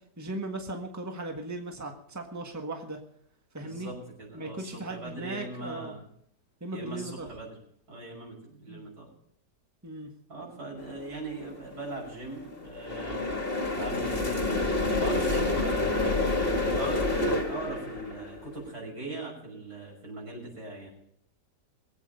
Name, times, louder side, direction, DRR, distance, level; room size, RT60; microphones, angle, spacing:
voice 1, 0.2-3.0 3.5-3.9 4.3-5.9 6.6-7.3 8.7-8.9 9.8-10.1, right 2 dB, 10° right, 3 dB, 1.5 m, -37 dB
voice 2, 3.6-6.0 6.7-7.5 7.9-9.1 10.3-13.3 13.8-14.7 15.0-16.2 16.5-20.9, right 2 dB, 85° right, -2 dB, 6.7 m, -40 dB
sound 1, 10.8-11.2 11.5-18.7, left 2 dB, 35° left, 1.7 m, -28 dB
22.5 x 8.4 x 5.3 m, 0.68 s
omnidirectional pair, 1.7 m